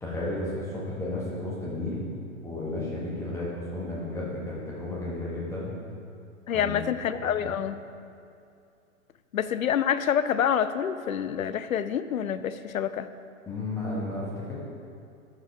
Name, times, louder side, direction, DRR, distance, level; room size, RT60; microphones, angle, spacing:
voice 1, 0.0-2.1 2.4-5.7 6.5-7.5 13.5-14.5, left 2 dB, 5° left, -6 dB, 1.5 m, -33 dB
voice 2, 6.5-7.8 9.3-13.1, left 8 dB, 70° left, 12 dB, 0.5 m, -27 dB
12.0 x 4.9 x 3.5 m, 2.5 s
figure-of-eight pair, 110°, 43 cm